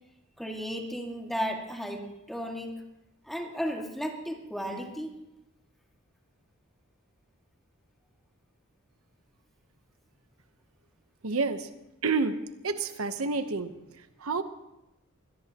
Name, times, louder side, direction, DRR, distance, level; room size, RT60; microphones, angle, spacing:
voice 1, 0.4-2.7 3.2-5.1, equal, ahead, 0 dB, 2.0 m, -34 dB
voice 2, 11.2-11.7 12.0-14.4, right 4 dB, 85° right, 9 dB, 1.0 m, -30 dB
24.5 x 18.0 x 3.0 m, 0.93 s
head